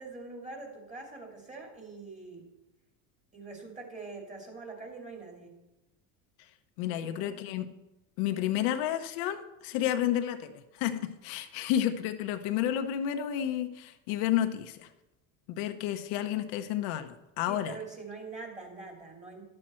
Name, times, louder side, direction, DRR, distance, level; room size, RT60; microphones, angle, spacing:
voice 1, 0.0-2.5 3.3-5.5 6.9-7.4 17.5-19.4, right 3 dB, 15° right, 1 dB, 2.8 m, -44 dB
voice 2, 6.8-7.7 8.2-14.9 15.5-17.7, left 11 dB, 70° left, 7 dB, 0.9 m, -31 dB
11.0 x 7.7 x 4.4 m, 0.98 s
supercardioid pair, 100°, 41 cm